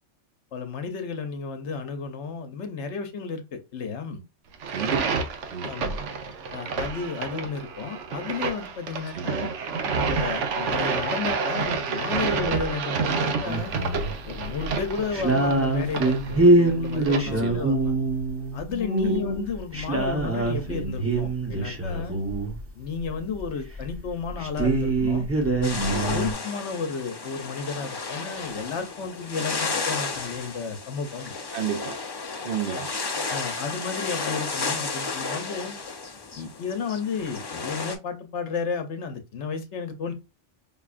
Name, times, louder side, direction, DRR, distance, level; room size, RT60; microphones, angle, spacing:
voice 1, 0.5-4.2 5.6-6.0 6.5-9.5 10.1-13.7 14.3-17.9 18.5-22.2 22.8-25.2 25.8-31.3 33.3-35.8 36.4-40.1, left 5 dB, 70° left, 1.0 m, -32 dB
sound 1, 4.5-17.2, right 5 dB, 80° right, 1.0 m, -29 dB
voice 2, 4.7-5.2 5.5-5.7 9.1-9.3 17.2-17.7 19.0-19.2 31.5-32.0 32.4-32.9, right 7 dB, 60° right, 0.7 m, -31 dB
sound 2, 13.5-14.1 14.5-14.7 15.1-22.6 23.4-23.5 23.8-23.9 24.1-26.3, right 2 dB, 15° right, 0.8 m, -24 dB
sound 3, 25.6-37.9, left 4 dB, 35° left, 0.4 m, -33 dB
5.3 x 2.3 x 2.4 m
omnidirectional pair, 1.2 m